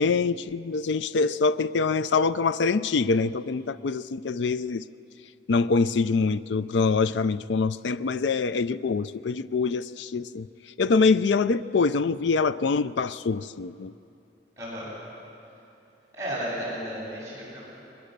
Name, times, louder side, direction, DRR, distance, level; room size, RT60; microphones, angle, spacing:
voice 1, 0.0-4.8 5.5-10.5 10.8-13.9, left 4 dB, 75° left, 15 dB, 0.4 m, -24 dB
voice 2, 14.6-14.9 16.1-17.6, equal, 15° right, -7 dB, 7.2 m, -33 dB
22.0 x 20.5 x 6.7 m, 2.8 s
head